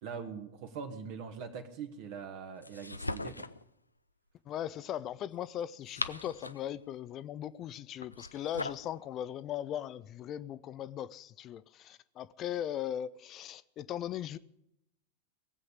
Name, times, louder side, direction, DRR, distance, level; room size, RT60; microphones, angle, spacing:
voice 1, 0.0-3.4, right 6 dB, 50° right, 1.5 m, -42 dB
sound 1, 2.6-3.6 5.6-6.7 8.0-8.9, left 2 dB, 85° left, 0.5 m, -39 dB
voice 2, 4.5-14.4, left 11 dB, 30° left, 0.5 m, -39 dB
18.0 x 7.9 x 8.7 m
figure-of-eight pair, 90°, 0 cm